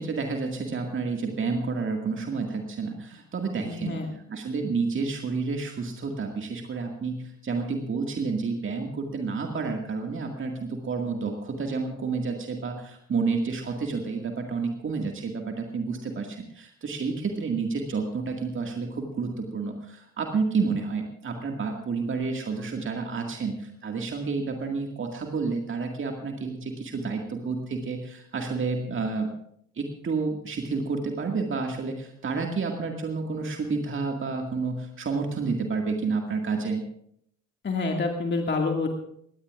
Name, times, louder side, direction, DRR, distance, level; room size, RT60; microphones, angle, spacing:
voice 1, 0.0-4.0 4.3-29.3 29.8-36.8, right 4 dB, 30° right, 3 dB, 2.1 m, -30 dB
voice 2, 3.6-4.1 37.6-38.9, left 3 dB, 25° left, 2 dB, 2.1 m, -27 dB
22.0 x 18.0 x 2.5 m, 0.68 s
figure-of-eight pair, 50°, 40 cm